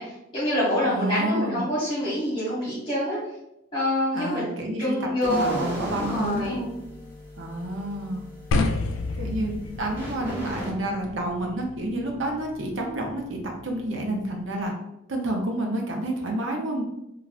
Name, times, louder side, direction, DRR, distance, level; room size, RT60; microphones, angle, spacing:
voice 1, 0.0-3.2 3.7-4.4 4.8-5.6 5.9-6.6, left 1 dB, 25° left, -10 dB, 1.1 m, -26 dB
voice 2, 0.8-1.6 4.1-4.9 5.2-6.8 7.4-8.3 9.2-14.7 15.1-16.8, right 1 dB, 75° right, 1 dB, 0.6 m, -29 dB
sound 1, 5.2-10.7, equal, 10° right, 1.2 m, -37 dB
sound 2, 8.5-14.6, left 3 dB, 85° left, 0.3 m, -32 dB
3.4 x 2.3 x 2.4 m, 0.86 s
head